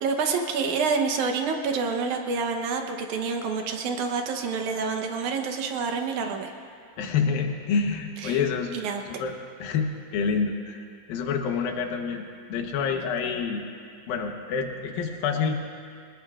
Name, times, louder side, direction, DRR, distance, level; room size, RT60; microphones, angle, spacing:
voice 1, 0.0-6.5 8.2-8.4 8.7-9.0, right 5 dB, 70° right, 4 dB, 2.2 m, -27 dB
voice 2, 7.0-8.7 9.1-10.8 11.1-13.7 14.1-15.5, left 5 dB, 90° left, 4 dB, 2.9 m, -27 dB
26.0 x 19.0 x 2.4 m, 2.3 s
omnidirectional pair, 4.0 m